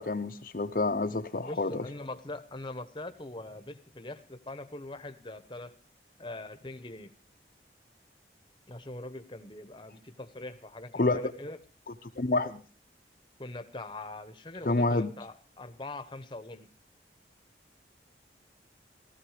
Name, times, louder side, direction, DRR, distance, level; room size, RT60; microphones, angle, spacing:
voice 1, 0.0-1.8 10.9-11.3 12.2-12.6 14.7-15.1, left 2 dB, 50° left, 4 dB, 0.8 m, -28 dB
voice 2, 1.4-5.7 6.2-7.1 8.7-11.6 13.4-16.7, left 2 dB, 25° left, 9 dB, 1.0 m, -42 dB
16.0 x 13.5 x 4.9 m, 0.35 s
head